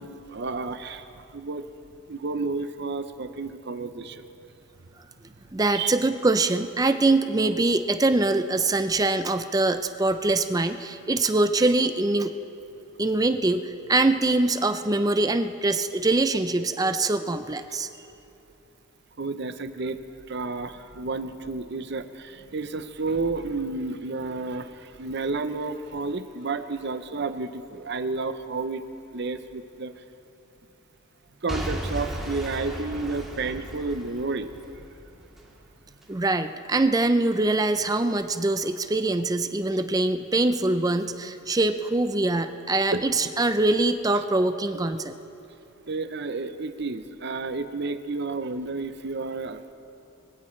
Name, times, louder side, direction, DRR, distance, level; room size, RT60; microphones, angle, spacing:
voice 1, 0.0-1.6 2.1-4.3 5.7-5.9 19.2-20.0 20.3-28.8 29.1-30.0 31.4-34.8 42.9-43.0 45.9-49.7, right 3 dB, 55° right, 10 dB, 0.7 m, -31 dB
voice 2, 5.5-12.3 13.0-17.9 36.1-45.1, right 2 dB, 15° right, 9 dB, 0.5 m, -23 dB
Boom / Shatter / Crushing, 31.5-35.5 36.0-36.1, equal, ahead, 1.9 m, -35 dB
23.5 x 16.0 x 3.2 m, 2.9 s
head